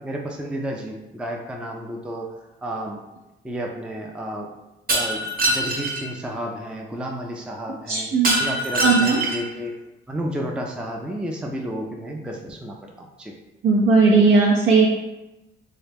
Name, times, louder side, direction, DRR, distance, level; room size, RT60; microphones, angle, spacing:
voice 1, 0.0-2.4 2.6-3.0 3.4-4.5 4.9-8.1 8.4-9.7 10.1-13.3, equal, 5° right, 0 dB, 0.4 m, -31 dB
Shatter, 4.9-6.0 8.2-9.5, right 1 dB, 50° right, 0.9 m, -23 dB
voice 2, 7.9-8.4 8.8-9.2 13.6-14.9, right 4 dB, 75° right, -2 dB, 0.6 m, -17 dB
3.1 x 2.4 x 3.4 m, 0.99 s
cardioid pair, 90°, 20 cm